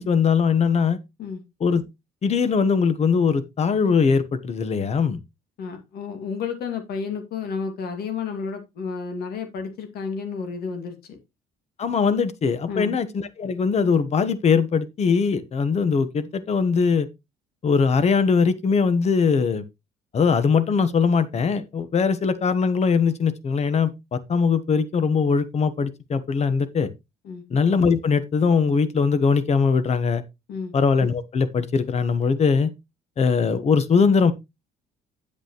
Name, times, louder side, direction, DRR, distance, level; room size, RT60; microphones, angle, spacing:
voice 1, 0.0-1.0 1.6-1.8 2.2-5.2 11.8-17.1 17.6-19.6 20.1-26.9 27.5-30.2 30.7-32.7 33.2-34.3, left 5 dB, 40° left, 1.1 m, -21 dB
voice 2, 5.6-11.2 12.7-13.0 27.2-27.4 30.5-30.7, left 5 dB, 65° left, 2.4 m, -31 dB
8.4 x 8.2 x 3.0 m
cardioid pair, 110°, 17 cm